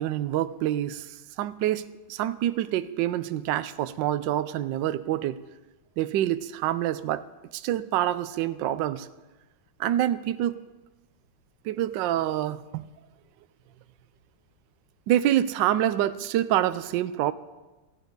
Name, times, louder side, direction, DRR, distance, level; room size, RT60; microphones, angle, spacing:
voice 1, 0.0-5.4 6.0-7.3 7.5-9.1 9.8-10.6 11.6-12.9 15.1-17.3, right 12 dB, 75° right, 13 dB, 1.2 m, -26 dB
18.0 x 14.5 x 3.9 m, 1.1 s
omnidirectional pair, 2.3 m